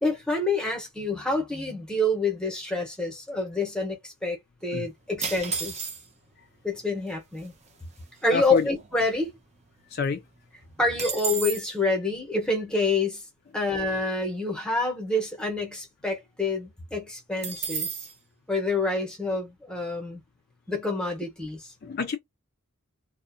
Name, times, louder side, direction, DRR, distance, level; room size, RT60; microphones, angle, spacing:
voice 1, 0.0-5.8 6.6-7.5 8.2-9.3 10.8-13.2 13.5-17.9 18.5-20.2 20.7-21.7, left 2 dB, 5° left, 0.8 m, -27 dB
sound 1, 5.2-6.3 7.1-7.2 7.4-7.7 8.2-9.6 10.0-10.1 10.3-11.7 17.4-18.1, right 5 dB, 30° right, 0.5 m, -33 dB
voice 2, 8.3-8.7 9.9-10.2 21.8-22.2, left 5 dB, 45° left, 0.3 m, -28 dB
2.4 x 2.1 x 2.5 m
head